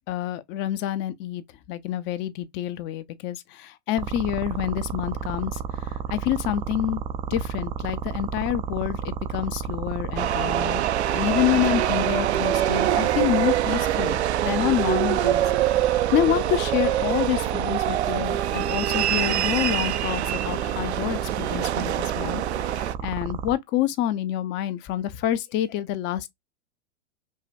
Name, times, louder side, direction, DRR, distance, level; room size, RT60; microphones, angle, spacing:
voice 1, 0.1-1.4 1.7-5.6 6.1-7.0 7.3-10.8 11.1-14.2 14.4-15.4 16.1-22.4 22.7-26.3, left 12 dB, 35° left, 0.6 m, -27 dB
sound 1, 4.0-23.5, right 8 dB, 15° right, 0.3 m, -31 dB
sound 2, 10.2-23.0, right 12 dB, 80° right, 0.5 m, -25 dB
5.4 x 2.2 x 2.6 m
hypercardioid pair, 115°, 33 cm